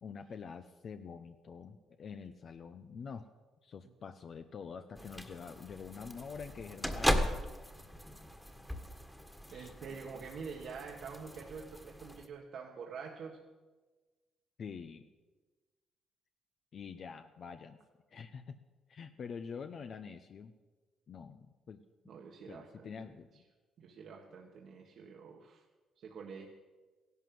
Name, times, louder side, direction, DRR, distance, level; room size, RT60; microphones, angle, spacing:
voice 1, 0.0-3.3 3.6-7.4 9.5-9.7 14.6-15.1 16.7-17.8 18.1-18.6 18.9-20.5 21.1-21.8 22.5-23.3, left 6 dB, 55° left, 8 dB, 0.8 m, -46 dB
sound 1, 5.0-12.3, equal, 5° left, 1.7 m, -38 dB
voice 2, 9.5-13.4 22.1-22.9 23.8-25.6 26.0-26.5, right 5 dB, 65° right, 1 dB, 1.6 m, -46 dB
15.5 x 11.5 x 7.7 m, 1.3 s
cardioid pair, 90°, 0 cm